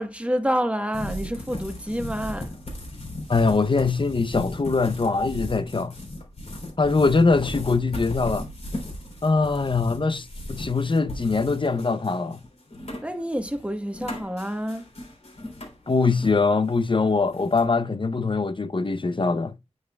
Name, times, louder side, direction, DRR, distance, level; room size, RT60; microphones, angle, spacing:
voice 1, 0.0-2.5 13.0-14.9, equal, 10° right, 1.2 m, -28 dB
sound 1, 0.9-16.4 16.6-17.6, left 1 dB, 70° left, 3.3 m, -37 dB
voice 2, 3.3-5.9 6.8-8.4 9.2-12.4 15.9-19.5, left 4 dB, 45° left, 0.7 m, -22 dB
9.3 x 8.1 x 2.3 m
wide cardioid pair, 75°, 12 cm